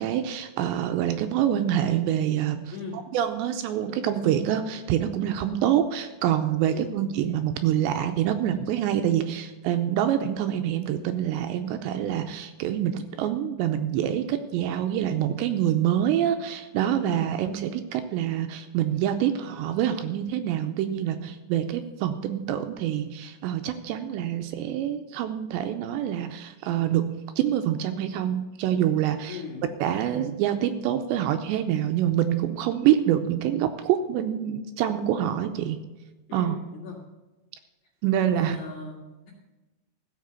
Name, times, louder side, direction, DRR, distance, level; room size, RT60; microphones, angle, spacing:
voice 1, 0.0-2.6 3.1-29.4 29.8-35.8 36.3-36.6 38.0-38.6, right 10 dB, 85° right, 8 dB, 2.7 m, -26 dB
voice 2, 2.7-3.1 6.7-6.9 17.0-17.3 29.3-29.6 36.3-37.0 38.2-39.3, left 4 dB, 55° left, -1 dB, 2.5 m, -38 dB
14.5 x 7.5 x 6.9 m, 1.1 s
omnidirectional pair, 5.4 m